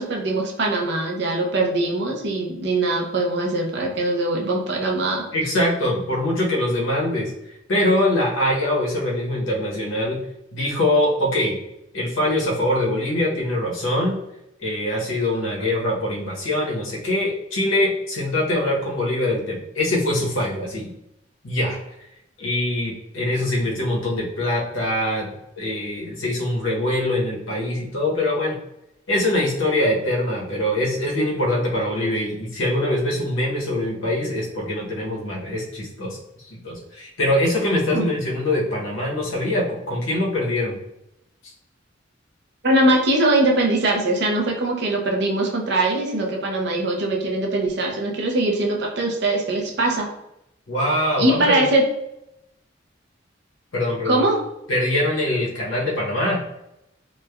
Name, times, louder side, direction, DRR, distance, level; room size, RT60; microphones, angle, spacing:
voice 1, 0.0-5.2 37.9-38.1 42.6-50.1 51.2-51.8 54.1-54.4, right 2 dB, 55° right, 0 dB, 0.5 m, -21 dB
voice 2, 5.3-7.3 7.7-10.2 10.5-11.5 11.9-14.2 14.6-20.9 21.4-21.8 22.4-28.6 29.1-36.2 36.6-40.7 50.7-51.6 53.7-54.3 54.7-56.4, left 1 dB, 85° left, -3 dB, 0.8 m, -23 dB
3.1 x 2.1 x 2.2 m, 0.84 s
head